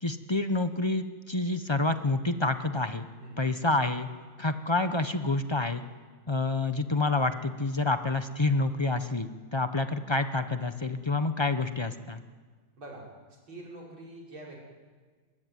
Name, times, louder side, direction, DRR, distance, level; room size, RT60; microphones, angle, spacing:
voice 1, 0.0-3.1 3.4-4.1 4.4-5.8 6.3-12.2, left 2 dB, 45° left, 9 dB, 0.3 m, -28 dB
voice 2, 3.2-3.5 12.8-13.1 13.5-14.6, right 1 dB, 85° right, -2 dB, 6.2 m, -45 dB
25.0 x 21.5 x 9.6 m, 1.5 s
omnidirectional pair, 2.1 m